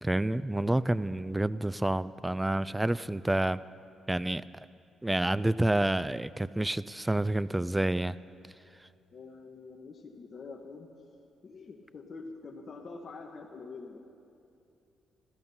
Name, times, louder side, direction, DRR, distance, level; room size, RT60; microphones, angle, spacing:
voice 1, 0.0-3.6 4.1-4.7 5.0-8.2, right 1 dB, 10° right, 17 dB, 0.3 m, -29 dB
voice 2, 9.1-10.9 11.4-14.0, left 4 dB, 45° left, -1 dB, 1.1 m, -45 dB
14.5 x 13.5 x 5.5 m, 2.6 s
cardioid pair, 90°, 0 cm